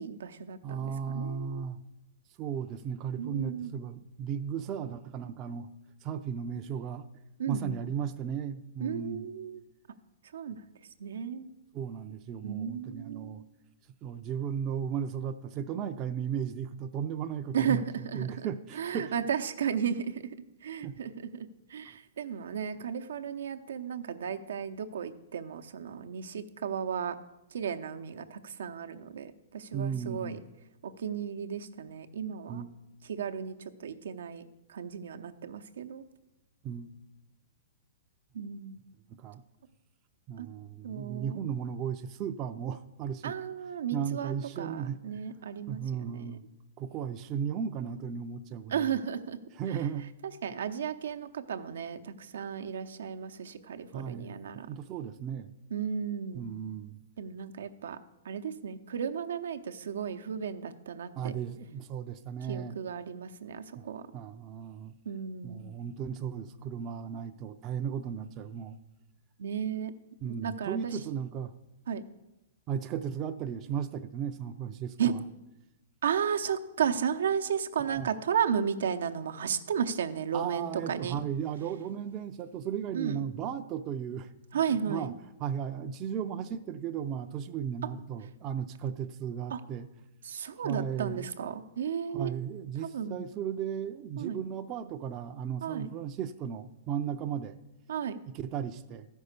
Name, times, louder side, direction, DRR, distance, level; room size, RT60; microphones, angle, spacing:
voice 1, 0.0-1.6 3.2-3.7 7.4-7.8 8.8-9.6 10.3-10.6 11.0-11.5 12.4-13.4 17.5-18.4 18.8-20.2 20.6-21.3 21.7-27.1 27.5-30.4 30.8-32.6 33.1-34.4 34.7-36.0 38.3-38.8 40.4-40.5 40.8-41.4 43.2-46.4 48.7-49.4 50.4-54.7 55.7-56.5 57.2-58.0 58.2-61.3 62.5-64.0 65.1-65.6 69.4-69.9 70.2-70.9 71.9-72.0 75.0-75.1 76.0-81.2 82.9-83.2 84.5-85.1 89.5-89.6 90.2-92.3 92.8-93.3 94.2-94.4 95.6-95.9 97.9-98.2, right 7 dB, 85° right, 7 dB, 0.7 m, -34 dB
voice 2, 0.6-1.8 2.4-5.7 6.0-7.1 7.5-9.3 11.7-13.4 14.0-17.8 18.1-19.1 20.8-21.0 29.7-30.4 32.5-32.8 36.6-36.9 39.2-39.4 40.3-43.4 43.9-45.2 45.7-46.4 46.8-48.9 49.5-50.1 53.9-54.4 54.7-55.5 56.3-57.0 61.2-62.8 63.8-63.9 64.1-64.9 65.4-68.8 70.2-71.5 72.7-75.3 77.8-78.1 80.3-85.1 85.4-89.9 90.6-91.3 92.1-97.6 98.3-99.1, right 8 dB, 25° right, 7 dB, 0.4 m, -35 dB
13.0 x 5.4 x 6.6 m, 0.97 s
hypercardioid pair, 165°, 0 cm